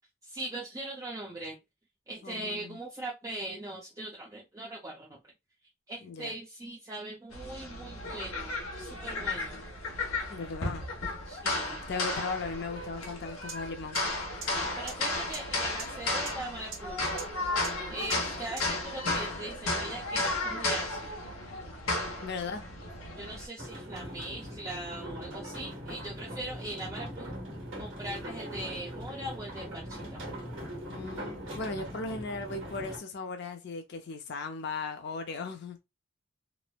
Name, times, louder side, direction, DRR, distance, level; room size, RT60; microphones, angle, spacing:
voice 1, 0.2-1.6 2.1-5.2 5.9-9.6 11.2-11.9 14.5-17.1 17.9-21.2 23.2-27.3 27.8-30.2, right 1 dB, 15° right, 0.4 m, -40 dB
voice 2, 2.2-2.8 6.0-6.3 10.3-10.8 11.9-14.0 22.2-22.6 30.9-35.8, left 4 dB, 55° left, 0.4 m, -37 dB
sound 1, 7.3-23.5, left 2 dB, 85° left, 0.8 m, -34 dB
sound 2, 13.5-13.6 13.9-14.0 14.4-14.5 14.9-15.0 15.3-15.4 15.8-15.9 16.3-16.4 16.7-16.8 17.2-17.3 17.6-17.7 18.1-18.2 18.6-18.7, right 6 dB, 85° right, 1.0 m, -38 dB
sound 3, 23.6-33.0, equal, 65° right, 1.3 m, -41 dB
3.0 x 2.0 x 2.2 m
head